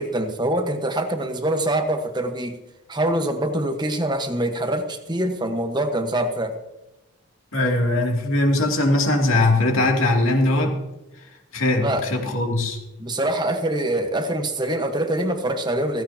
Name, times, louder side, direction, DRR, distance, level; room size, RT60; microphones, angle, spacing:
voice 1, 0.0-2.6 2.9-6.5 11.8-12.0 13.0-16.0, right 1 dB, 20° right, 6 dB, 1.2 m, -24 dB
voice 2, 7.5-10.8 11.5-12.8, left 2 dB, 65° left, 1 dB, 2.7 m, -20 dB
16.0 x 16.0 x 2.9 m, 1.0 s
head